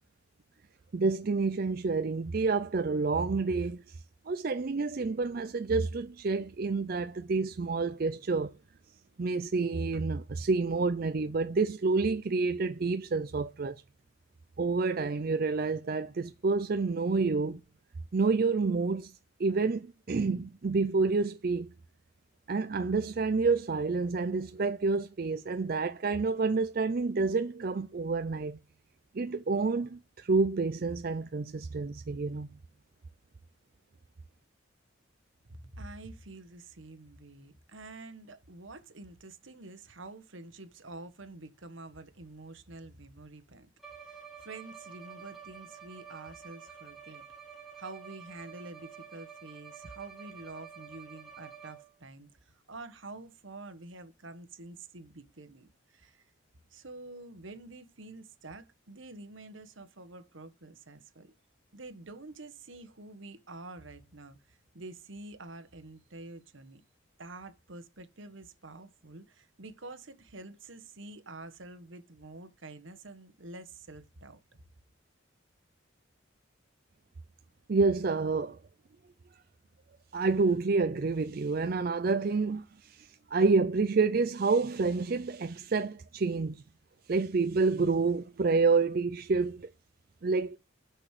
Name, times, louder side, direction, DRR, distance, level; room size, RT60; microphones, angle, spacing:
voice 1, 0.9-4.0 4.3-8.5 9.2-13.8 14.6-17.6 18.1-21.7 22.5-28.6 29.1-32.6 77.7-78.6 80.1-86.6 87.1-89.7 90.2-90.6, right 4 dB, 45° right, 0.4 m, -28 dB
voice 2, 35.5-43.7 44.0-47.2 47.8-56.2 56.7-61.3 61.7-66.8 67.2-74.4, right 2 dB, 70° right, 1.3 m, -47 dB
Bowed string instrument, 43.8-52.1, right 7 dB, ahead, 2.2 m, -49 dB
6.3 x 6.1 x 4.9 m
head